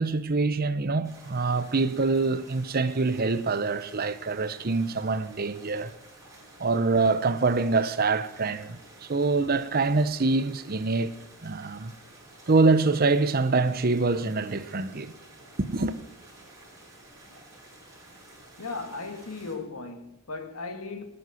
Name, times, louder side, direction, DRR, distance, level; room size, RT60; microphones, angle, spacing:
voice 1, 0.0-5.9 6.6-11.1 11.4-11.9 12.5-15.1 15.6-15.9, right 3 dB, 45° right, 0.7 m, -25 dB
sound 1, 1.0-19.6, right 1 dB, 15° right, 5.3 m, -51 dB
voice 2, 18.6-21.0, left 3 dB, 85° left, 1.9 m, -36 dB
18.5 x 7.8 x 7.9 m
head